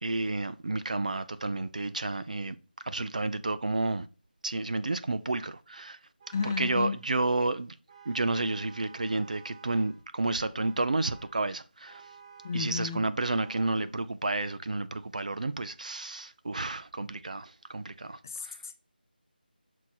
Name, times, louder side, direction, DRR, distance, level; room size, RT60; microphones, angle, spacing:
voice 1, 0.0-2.6 2.9-4.1 4.4-6.0 6.6-7.7 8.1-12.0 12.5-18.2 18.4-18.5, right 2 dB, 50° right, 0.5 m, -31 dB
Vehicle horn car horn honking, 6.2-7.1 7.9-10.1 10.6-11.4 11.9-12.7 13.3-13.9, right 6 dB, 30° right, 1.1 m, -53 dB
voice 2, 6.3-7.0 12.4-13.0 18.2-18.7, left 4 dB, 20° left, 0.5 m, -32 dB
6.3 x 4.2 x 4.2 m
figure-of-eight pair, 170°, 5 cm